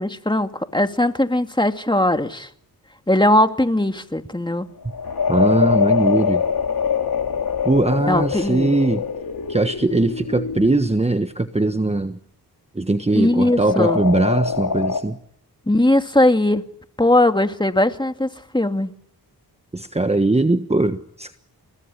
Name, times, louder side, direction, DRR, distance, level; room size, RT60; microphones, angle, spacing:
voice 1, 0.0-2.5 3.1-4.7 8.1-8.7 13.1-14.0 15.7-16.6 17.0-18.9, left 1 dB, 10° left, 7 dB, 2.5 m, -19 dB
sound 1, 4.8-11.0 13.4-15.0, left 6 dB, 70° left, 3.1 m, -23 dB
voice 2, 5.3-6.4 7.6-9.0 9.5-12.2 12.7-15.2 19.7-21.3, right 2 dB, 15° right, 9 dB, 1.3 m, -20 dB
29.5 x 20.0 x 10.0 m, 0.69 s
cardioid pair, 55°, 37 cm